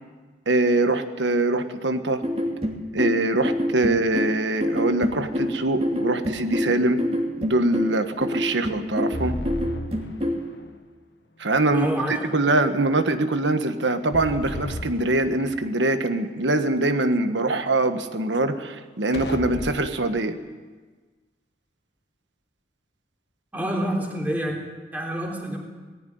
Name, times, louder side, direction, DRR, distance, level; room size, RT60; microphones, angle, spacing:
voice 1, 0.5-2.2 2.9-7.0 7.4-9.4 11.4-11.9 12.3-20.4, right 2 dB, 85° right, 8 dB, 1.4 m, -23 dB
sound 1, 2.2-10.5, equal, 30° right, 2.6 m, -27 dB
sound 2, 5.1-5.8 9.1-10.8 14.1-15.8 19.1-20.0, left 1 dB, 70° left, 1.3 m, -35 dB
voice 2, 11.7-12.4 23.5-24.6 24.9-25.6, right 1 dB, 10° right, -1 dB, 3.4 m, -27 dB
19.0 x 14.5 x 9.4 m, 1.4 s
head